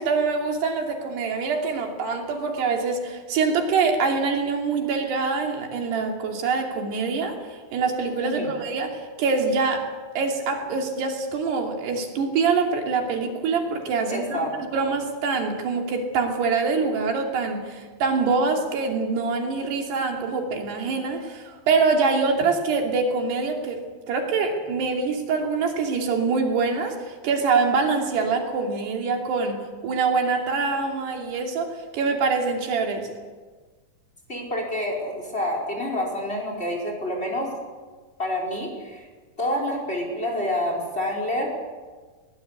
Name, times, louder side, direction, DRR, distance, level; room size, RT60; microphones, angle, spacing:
voice 1, 0.0-7.4 7.7-9.9 10.2-14.4 14.7-23.8 24.1-27.0 27.2-33.1, right 4 dB, 80° right, 2 dB, 4.8 m, -24 dB
voice 2, 14.1-14.5 34.3-37.5 38.2-39.1 39.4-41.5, left 1 dB, 15° left, 1 dB, 4.8 m, -28 dB
22.0 x 19.5 x 8.3 m, 1.4 s
omnidirectional pair, 4.7 m